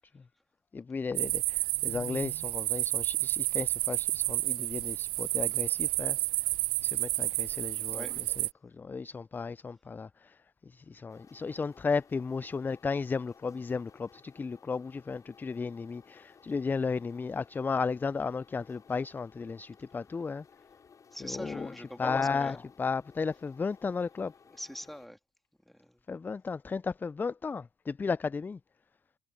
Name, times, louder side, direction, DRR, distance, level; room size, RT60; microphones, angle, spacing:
voice 1, 0.7-6.2 6.8-8.1 8.6-10.4 10.7-20.4 21.3-21.7 22.0-24.3 26.1-28.6, left 4 dB, 20° left, 0.3 m, -34 dB
sound 1, 1.2-8.5, right 22 dB, 75° right, 0.6 m, -30 dB
voice 2, 7.8-8.1 21.1-22.6 24.5-25.2 25.6-26.0, equal, ahead, 3.2 m, -43 dB
sound 2, 11.1-25.1, left 6 dB, 40° left, 6.0 m, -59 dB
hypercardioid pair, 70°, 9 cm